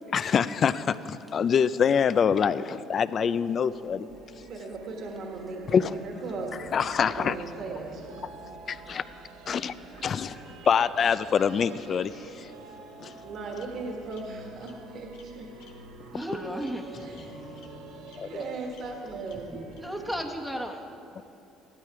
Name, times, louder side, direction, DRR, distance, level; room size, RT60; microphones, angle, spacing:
voice 1, 0.1-4.1 5.7-5.9 6.7-7.4 8.7-9.0 9.5-9.7 10.0-10.4 10.6-12.5 13.0-13.1 18.2-18.3, left 7 dB, 40° left, 16 dB, 0.4 m, -25 dB
sound 1, 3.3-20.2, right 3 dB, 80° right, 1.3 m, -47 dB
voice 2, 4.4-6.7 7.1-8.2 13.2-15.5 17.0-17.2 18.2-19.8, right 3 dB, 55° right, 1 dB, 1.4 m, -38 dB
voice 3, 8.9-9.2 10.3-10.7 16.1-17.2 19.8-20.8, equal, ahead, 2 dB, 1.1 m, -35 dB
Bird vocalization bird call bird song, 11.6-12.4 13.0-13.1 13.5-13.6 14.1-14.2 14.6-14.8 15.1-15.3 15.6-15.7 16.2-16.3 16.6-16.7 17.1-17.2 17.6-17.7 18.1-18.2 18.7-18.8 19.3-19.4 19.7-19.8, left 7 dB, 85° left, 1.5 m, -55 dB
15.0 x 12.0 x 4.8 m, 2.8 s
cardioid pair, 120°, 0 cm